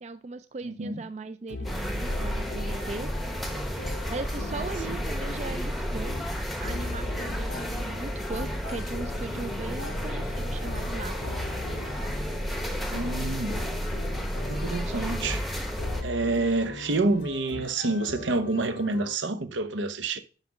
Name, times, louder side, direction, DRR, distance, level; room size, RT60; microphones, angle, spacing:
voice 1, 0.0-3.1 4.1-6.1 6.6-11.4, right 3 dB, 35° right, 0.3 m, -38 dB
voice 2, 0.6-1.0 12.8-13.6 14.5-15.4 16.0-20.2, right 2 dB, 85° right, 0.8 m, -28 dB
sound 1, 1.5-19.2, left 3 dB, 70° left, 0.6 m, -40 dB
sound 2, 1.6-16.0, equal, ahead, 0.8 m, -32 dB
5.7 x 5.3 x 5.9 m
head